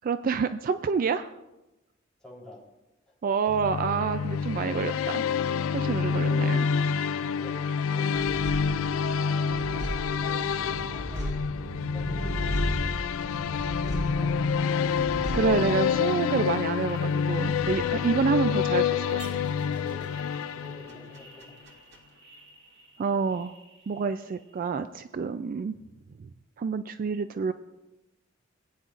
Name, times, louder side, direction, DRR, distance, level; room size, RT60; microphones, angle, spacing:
voice 1, 0.0-1.3 3.2-5.3 5.7-6.7 15.3-19.4 23.0-23.5 23.9-25.8 26.2-26.3 26.6-27.5, right 5 dB, 45° right, 11 dB, 0.3 m, -28 dB
voice 2, 2.2-2.6 3.1-3.2 6.1-6.7 7.1-12.8 13.2-14.8 19.6-21.6, left 1 dB, 5° left, -5 dB, 3.7 m, -47 dB
sound 1, 3.5-21.2, left 6 dB, 75° left, 0.3 m, -28 dB
sound 2, 8.1-23.0 23.3-24.1, equal, 60° right, 1.7 m, -37 dB
Bowed string instrument, 14.1-16.9, right 1 dB, 25° right, 2.0 m, -44 dB
19.0 x 9.5 x 2.5 m, 0.99 s
head